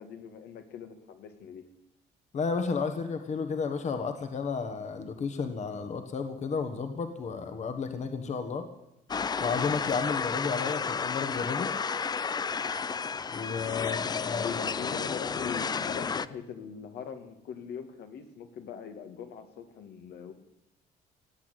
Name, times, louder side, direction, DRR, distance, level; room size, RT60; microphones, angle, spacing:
voice 1, 0.0-1.6 13.9-20.3, left 7 dB, 70° left, 6 dB, 2.0 m, -41 dB
voice 2, 2.3-8.7 9.4-11.7 13.3-14.5, left 5 dB, 45° left, 7 dB, 1.5 m, -32 dB
sound 1, 9.1-16.3, left 5 dB, 25° left, 0.5 m, -32 dB
17.5 x 8.6 x 9.1 m, 0.86 s
cardioid pair, 110°, 17 cm